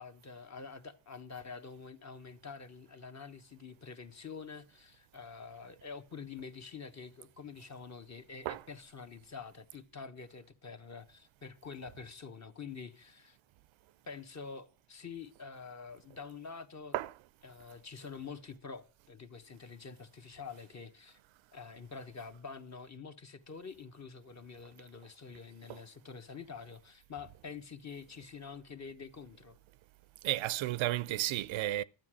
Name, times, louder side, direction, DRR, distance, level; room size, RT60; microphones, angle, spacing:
voice 1, 0.0-13.4 14.1-16.9 17.4-21.2 21.5-29.6, left 5 dB, 35° left, 1.2 m, -47 dB
voice 2, 30.2-31.8, right 15 dB, 75° right, 0.6 m, -32 dB
12.0 x 8.9 x 6.2 m
cardioid pair, 105°, 47 cm